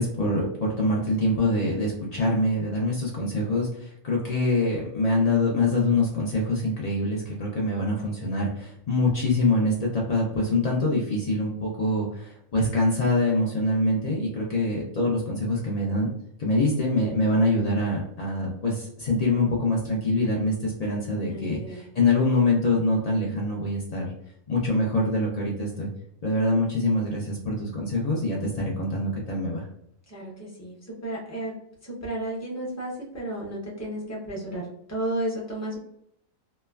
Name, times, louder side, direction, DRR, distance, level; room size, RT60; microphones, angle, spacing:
voice 1, 0.0-16.1 16.4-24.1 24.5-25.9 26.2-29.7, left 2 dB, 85° left, -3 dB, 0.3 m, -25 dB
voice 2, 21.2-21.8 30.1-30.8 31.0-31.5 31.8-35.8, right 1 dB, 20° left, -3 dB, 0.5 m, -33 dB
3.0 x 2.1 x 2.2 m, 0.72 s
omnidirectional pair, 1.4 m